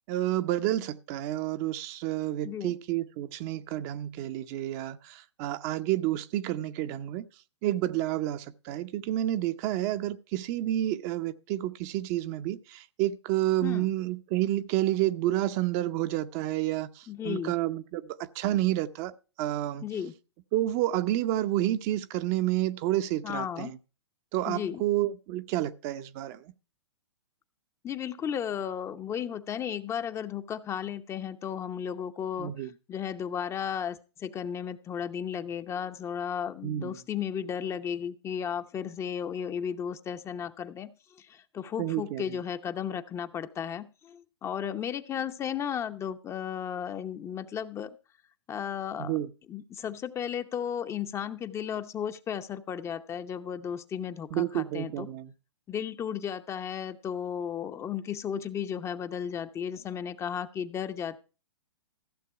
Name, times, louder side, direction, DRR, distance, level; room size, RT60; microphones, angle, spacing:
voice 1, 0.1-7.3 7.6-19.9 20.5-23.8 24.3-26.5 32.4-32.7 36.6-37.0 41.8-42.4 49.0-49.3 54.3-55.3, right 14 dB, 35° right, 0.8 m, -30 dB
voice 2, 17.1-17.5 19.8-20.1 23.2-23.7 24.5-24.8 27.8-48.0 48.5-49.2 49.5-55.1 55.7-61.2, left 8 dB, 20° left, 0.8 m, -34 dB
15.0 x 7.4 x 4.6 m
figure-of-eight pair, 115°, 15 cm